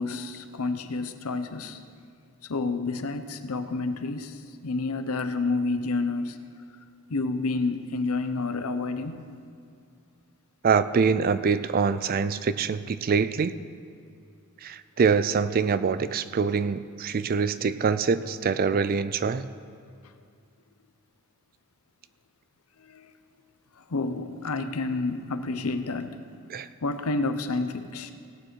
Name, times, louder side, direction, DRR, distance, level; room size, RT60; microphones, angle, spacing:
voice 1, 0.0-1.8 2.5-6.4 7.1-9.2 22.8-23.1 23.9-26.2 26.8-28.1, left 3 dB, 70° left, 9 dB, 0.7 m, -29 dB
voice 2, 10.6-13.5 14.6-19.5 26.5-26.7, right 5 dB, 40° right, 14 dB, 0.3 m, -24 dB
17.0 x 8.9 x 4.6 m, 2.4 s
head